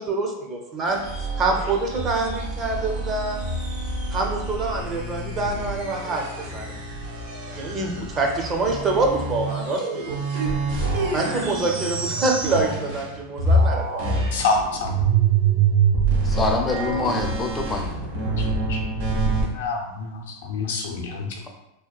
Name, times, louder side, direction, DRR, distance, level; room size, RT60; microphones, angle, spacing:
voice 1, 0.0-3.4 4.1-6.8 7.6-10.2 11.1-14.1, right 3 dB, 30° right, 1 dB, 0.5 m, -26 dB
sound 1, 0.8-13.1 13.4-19.4, right 3 dB, 80° right, 0.8 m, -26 dB
voice 2, 14.3-15.0 18.7-18.8 19.5-21.3, left 3 dB, 75° left, -1 dB, 0.6 m, -27 dB
voice 3, 16.2-17.9, left 3 dB, 20° left, 2 dB, 0.4 m, -25 dB
2.8 x 2.1 x 2.2 m, 0.87 s
hypercardioid pair, 110°, 0 cm